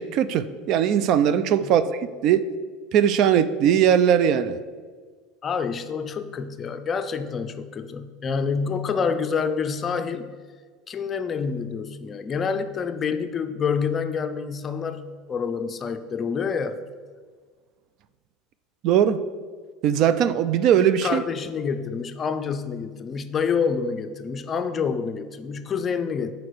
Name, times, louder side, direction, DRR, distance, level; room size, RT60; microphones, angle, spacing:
voice 1, 0.0-2.4 2.9-4.6 18.8-19.2 19.8-21.2, right 9 dB, 55° right, 13 dB, 0.4 m, -20 dB
voice 2, 5.4-10.3 10.9-15.0 15.3-16.8 21.0-26.3, left 6 dB, 30° left, 9 dB, 0.5 m, -27 dB
6.6 x 4.8 x 6.3 m, 1.5 s
supercardioid pair, 115°, 0 cm